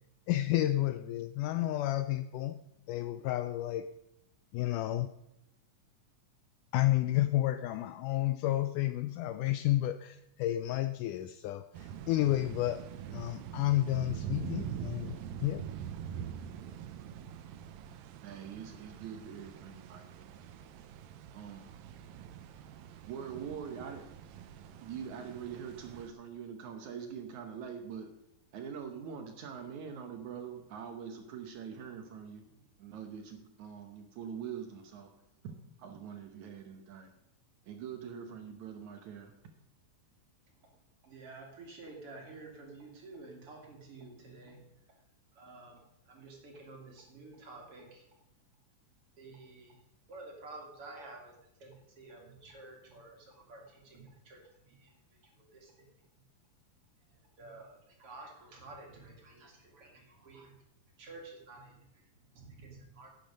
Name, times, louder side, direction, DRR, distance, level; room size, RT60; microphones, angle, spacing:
voice 1, 0.3-2.6 2.9-3.9 4.5-5.1 6.7-12.9 13.1-15.7, left 14 dB, 80° left, 12 dB, 1.9 m, -31 dB
sound 1, 11.7-26.1, right 9 dB, 80° right, 2.5 m, -44 dB
voice 2, 18.2-20.4 21.3-21.8 23.1-24.0 24.8-28.1 28.5-35.1 35.4-37.1 37.6-39.3, right 7 dB, 65° right, 5 dB, 2.2 m, -44 dB
voice 3, 41.0-44.7 45.3-45.8 46.1-48.1 49.2-49.8 50.1-54.9 55.4-55.9 57.1-60.5 61.0-61.8 62.3-63.1, right 3 dB, 45° right, 1 dB, 3.0 m, -51 dB
11.5 x 9.1 x 5.2 m, 0.85 s
omnidirectional pair, 4.0 m